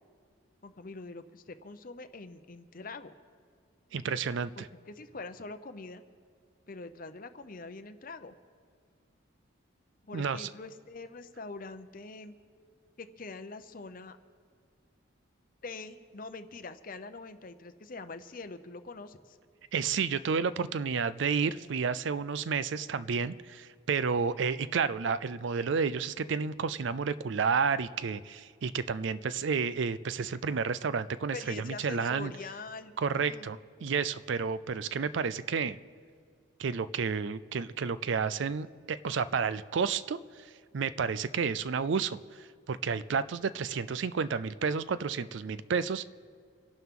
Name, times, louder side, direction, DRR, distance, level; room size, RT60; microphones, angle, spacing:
voice 1, 0.6-3.1 4.6-6.0 6.7-8.3 10.0-12.3 13.0-14.2 15.6-19.4 31.3-33.5, left 3 dB, 40° left, 10 dB, 0.7 m, -44 dB
voice 2, 3.9-4.7 10.1-10.5 19.7-32.3 33.0-35.8 36.6-40.2 40.7-42.2 42.7-46.1, right 5 dB, 65° right, 15 dB, 0.4 m, -31 dB
26.5 x 11.5 x 3.7 m, 2.1 s
head